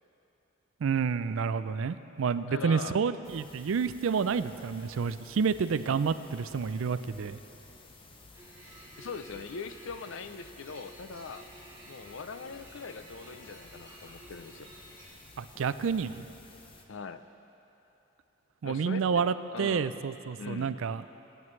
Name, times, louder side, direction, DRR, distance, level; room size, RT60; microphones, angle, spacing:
voice 1, 0.8-7.4 15.4-16.3 18.6-21.0, right 6 dB, 75° right, 13 dB, 0.4 m, -29 dB
voice 2, 2.5-3.0 9.0-11.4 11.9-14.7 16.9-17.2 18.6-20.0 20.3-20.7, left 4 dB, 70° left, 10 dB, 0.5 m, -41 dB
sound 1, 3.2-16.8, left 3 dB, 25° left, 0.7 m, -54 dB
sound 2, 8.3-15.1, right 2 dB, 20° right, 2.9 m, -52 dB
22.0 x 9.3 x 3.2 m, 3.0 s
head